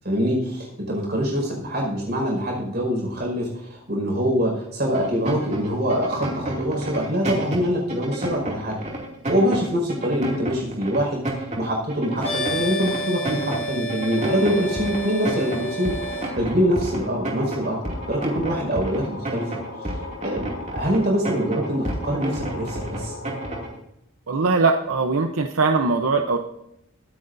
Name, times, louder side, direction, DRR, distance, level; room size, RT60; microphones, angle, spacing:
voice 1, 0.0-8.8 9.3-15.9 16.3-17.8 18.1-19.5 19.8-20.0 20.2-23.1, equal, 45° right, 0 dB, 5.3 m, -24 dB
sound 1, 4.9-23.8, right 1 dB, 30° right, 2.5 m, -31 dB
sound 2, 12.2-16.3, equal, 5° left, 5.2 m, -30 dB
sound 3, 14.2-23.6, left 2 dB, 75° left, 3.4 m, -38 dB
voice 2, 24.3-26.4, right 3 dB, 80° right, 5 dB, 0.8 m, -21 dB
22.0 x 9.6 x 2.7 m, 0.82 s
head